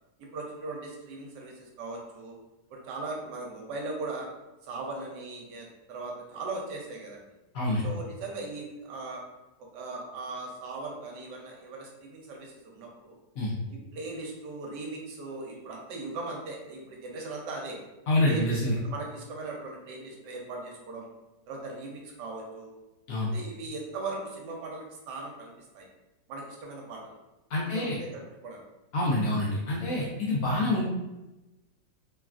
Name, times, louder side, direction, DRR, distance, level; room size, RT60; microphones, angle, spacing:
voice 1, 0.2-2.4 2.7-4.3 4.6-7.2 7.8-9.2 9.7-13.2 13.7-17.8 18.2-21.1 21.5-22.7 23.3-25.9 26.3-27.2 27.6-28.6, right 3 dB, 75° right, -1 dB, 1.2 m, -39 dB
voice 2, 7.5-7.8 13.4-13.5 18.1-18.7 23.1-23.3 27.5-28.0 28.9-30.8, left 1 dB, 65° left, -5 dB, 0.9 m, -26 dB
3.2 x 2.4 x 2.3 m, 1.0 s
omnidirectional pair, 1.9 m